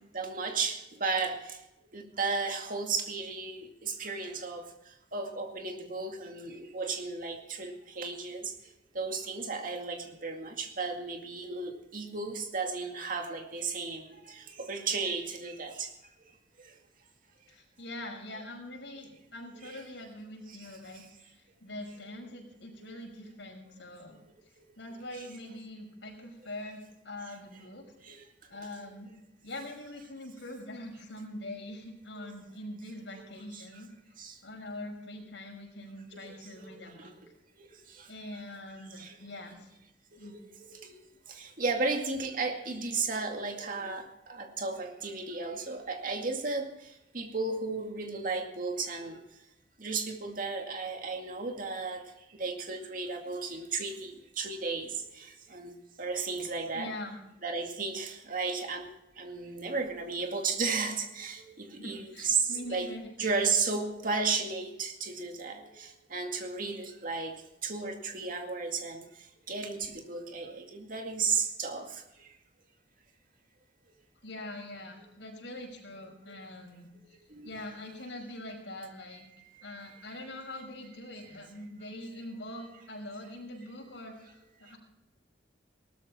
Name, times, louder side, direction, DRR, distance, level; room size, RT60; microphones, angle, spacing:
voice 1, 0.1-1.6 1.9-4.6 5.1-8.5 8.9-15.9 16.6-16.8 19.6-19.8 20.5-20.7 20.9-21.1 22.8-22.9 24.6-24.7 28.0-28.2 28.8-28.9 32.2-32.3 33.5-33.8 34.2-34.4 36.1-37.1 37.6-38.1 39.0-39.2 40.2-49.2 49.8-52.0 52.3-56.9 57.4-62.9 63.2-69.0 69.5-72.0 76.3-76.4 77.1-77.5 79.5-79.6, right 4 dB, 50° right, 3 dB, 2.2 m, -34 dB
voice 2, 17.5-24.2 24.8-27.8 28.1-28.2 28.5-29.1 29.4-33.9 34.4-37.2 38.1-39.7 40.2-40.4 56.7-57.2 61.8-63.1 74.2-77.2 77.4-79.3 79.6-84.8, left 1 dB, 80° left, 1 dB, 5.6 m, -43 dB
18.5 x 13.5 x 4.3 m, 0.88 s
head